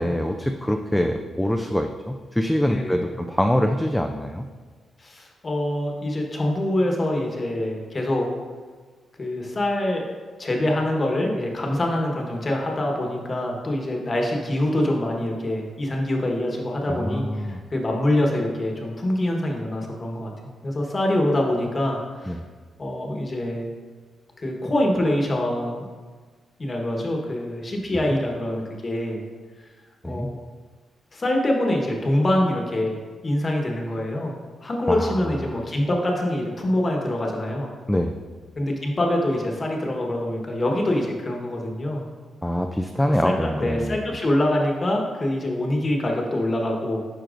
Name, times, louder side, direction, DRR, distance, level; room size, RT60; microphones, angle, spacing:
voice 1, 0.0-4.5 16.9-17.6 22.3-22.4 28.1-28.2 30.0-30.3 34.9-35.2 37.9-38.2 42.4-44.1, equal, 5° left, 4 dB, 0.3 m, -24 dB
voice 2, 2.6-3.0 5.0-8.3 9.2-10.1 10.4-22.4 22.8-23.7 24.4-25.9 26.6-29.2 30.0-30.4 31.1-33.0 33.2-37.7 38.6-42.0 43.0-47.0, left 1 dB, 30° left, 0 dB, 1.1 m, -25 dB
10.0 x 4.5 x 2.5 m, 1.5 s
cardioid pair, 110°, 0 cm